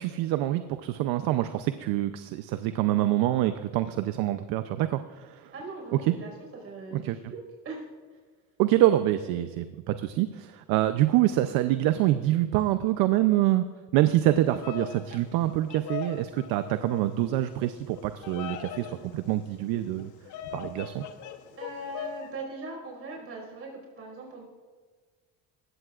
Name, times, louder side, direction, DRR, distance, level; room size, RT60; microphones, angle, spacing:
voice 1, 0.0-5.5 6.1-6.2 6.9-7.2 8.6-13.6 13.9-20.1 20.5-21.1, right 14 dB, 80° right, 10 dB, 0.7 m, -26 dB
voice 2, 5.5-6.3 6.6-7.4 7.6-7.9 8.1-8.2 21.6-24.4, right 2 dB, 40° right, 0 dB, 5.0 m, -40 dB
Bird vocalization bird call bird song, 14.3-22.3, left 8 dB, 55° left, 1.1 m, -41 dB
19.5 x 16.0 x 2.5 m, 1.5 s
cardioid pair, 130°, 36 cm